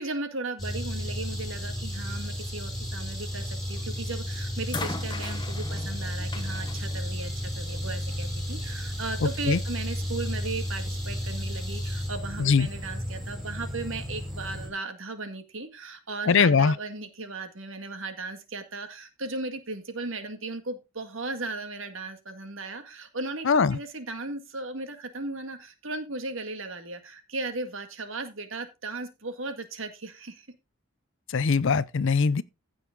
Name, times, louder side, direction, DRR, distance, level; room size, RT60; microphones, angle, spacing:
voice 1, 0.0-30.5, right 3 dB, 60° right, 1.9 m, -36 dB
sound 1, 0.6-14.7, equal, ahead, 4.4 m, -33 dB
sound 2, 3.8-4.1 4.7-8.0 9.0-9.1, left 3 dB, 20° left, 1.0 m, -39 dB
voice 2, 16.3-16.7 23.5-23.8 31.3-32.4, left 5 dB, 55° left, 0.5 m, -21 dB
15.5 x 6.4 x 3.7 m
head